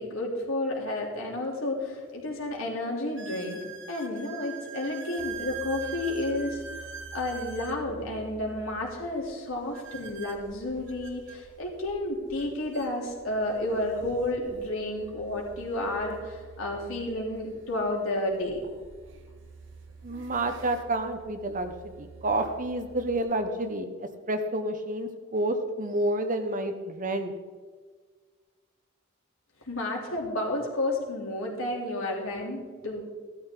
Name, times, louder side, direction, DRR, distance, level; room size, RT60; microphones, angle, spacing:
voice 1, 0.0-3.6 3.9-6.6 7.1-18.6 29.7-33.0, left 1 dB, 80° left, -2 dB, 3.4 m, -31 dB
sound 1, 1.4-1.5 2.2-2.3 3.2-7.8 9.7-11.4 12.4-12.5 12.7-12.9 13.7-13.8 16.0-16.1 18.2-18.3 19.0-19.3 19.9-20.8, right 7 dB, 65° right, 1.3 m, -42 dB
sound 2, 5.2-23.2, right 3 dB, 90° right, 3.7 m, -50 dB
voice 2, 20.0-27.3, right 1 dB, 40° right, 7 dB, 1.1 m, -29 dB
15.0 x 12.5 x 3.9 m, 1.5 s
head